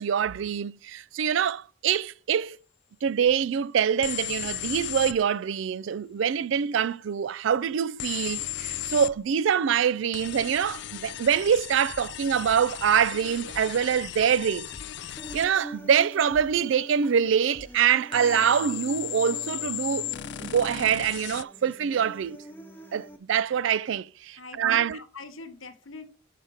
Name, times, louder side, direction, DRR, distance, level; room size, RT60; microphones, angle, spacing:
voice 1, 0.0-2.6 3.0-14.7 15.3-20.1 20.4-22.4 22.9-25.0, right 8 dB, 65° right, 0.3 m, -25 dB
sound 1, 4.0-5.2 8.0-9.2 10.1-15.5 18.1-21.4, left 14 dB, 60° left, 0.3 m, -36 dB
sound 2, 11.4-11.5 11.9-14.3 14.6-15.7 16.3-16.4 17.0-17.1 17.5-17.9, equal, 25° right, 1.1 m, -50 dB
Human voice, 15.2-23.2, right 1 dB, 10° left, 0.6 m, -44 dB
voice 2, 24.4-26.1, left 4 dB, 80° left, 1.1 m, -43 dB
5.6 x 5.0 x 6.3 m
head